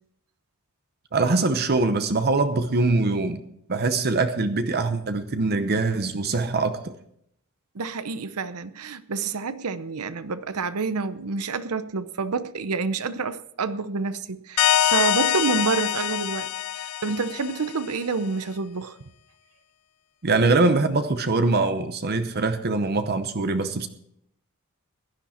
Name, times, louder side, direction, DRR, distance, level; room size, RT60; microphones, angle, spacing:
voice 1, 1.1-3.4 3.7-6.9 20.2-23.9, right 3 dB, 45° right, 0.8 m, -23 dB
voice 2, 7.7-16.5 16.7-19.0, right 4 dB, 85° right, 0.8 m, -28 dB
sound 1, 14.6-18.0, left 11 dB, 85° left, 0.4 m, -24 dB
16.0 x 11.0 x 4.3 m
head